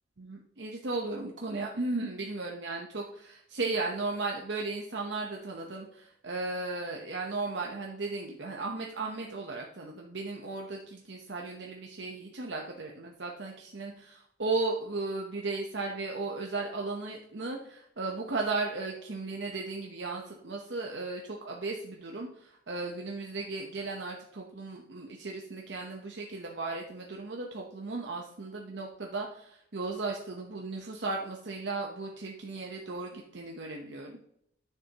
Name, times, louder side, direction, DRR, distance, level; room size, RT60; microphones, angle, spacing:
voice 1, 0.2-34.2, right 3 dB, 65° right, 0 dB, 0.9 m, -36 dB
10.5 x 6.8 x 2.9 m, 0.74 s
head